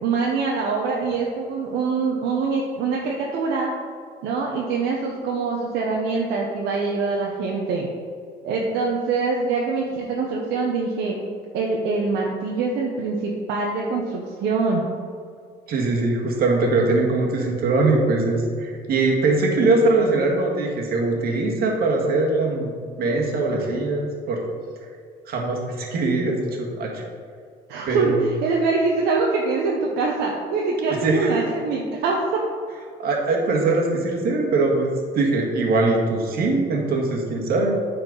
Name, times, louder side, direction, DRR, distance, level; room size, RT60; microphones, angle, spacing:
voice 1, 0.0-3.7 4.2-7.9 8.4-11.2 11.5-14.8 23.5-23.7 27.7-32.2, right 4 dB, 80° right, -1 dB, 1.0 m, -24 dB
voice 2, 15.7-24.4 25.3-27.0 27.9-28.2 31.0-31.5 33.0-37.8, right 3 dB, 65° right, 0 dB, 1.8 m, -22 dB
8.9 x 4.4 x 5.4 m, 2.1 s
cardioid pair, 110°, 17 cm